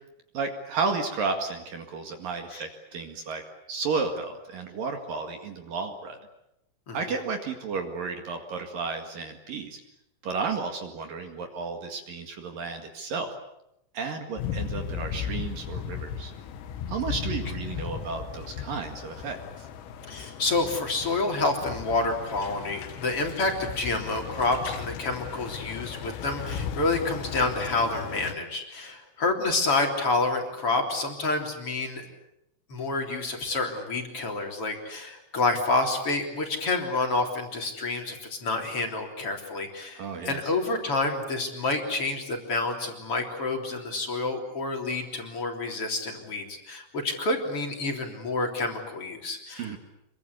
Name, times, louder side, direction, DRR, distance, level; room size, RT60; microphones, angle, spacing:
voice 1, 0.3-3.4 3.7-6.2 6.9-9.8 10.2-13.3 13.9-16.3 16.9-19.7 40.0-40.5 49.5-49.8, right 4 dB, 55° right, 5 dB, 3.0 m, -32 dB
sound 1, 14.4-28.4, left 8 dB, 85° left, 4.2 m, -36 dB
voice 2, 20.1-32.1 32.7-49.7, left 3 dB, 30° left, 2 dB, 3.7 m, -28 dB
27.0 x 23.5 x 8.3 m, 0.84 s
omnidirectional pair, 5.8 m